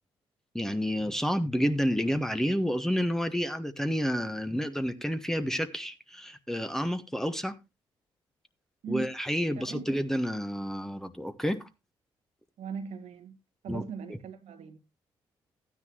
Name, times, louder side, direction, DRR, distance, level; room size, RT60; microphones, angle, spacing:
voice 1, 0.5-7.5 8.9-11.7 13.7-13.8, equal, 5° left, 1.2 m, -29 dB
voice 2, 12.6-13.4 13.6-14.8, right 6 dB, 65° right, 1.4 m, -39 dB
13.5 x 9.6 x 3.0 m
hypercardioid pair, 40°, 12 cm